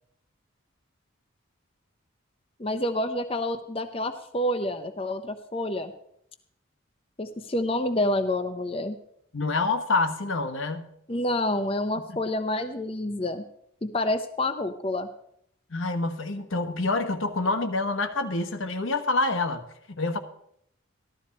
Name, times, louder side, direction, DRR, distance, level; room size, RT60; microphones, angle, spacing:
voice 1, 2.6-5.9 7.2-9.0 11.1-13.4 13.8-15.1, left 1 dB, 30° left, 7 dB, 0.6 m, -28 dB
voice 2, 9.3-10.8 12.1-12.2 15.7-20.2, left 3 dB, 80° left, 7 dB, 1.3 m, -27 dB
14.0 x 13.0 x 4.2 m, 0.72 s
head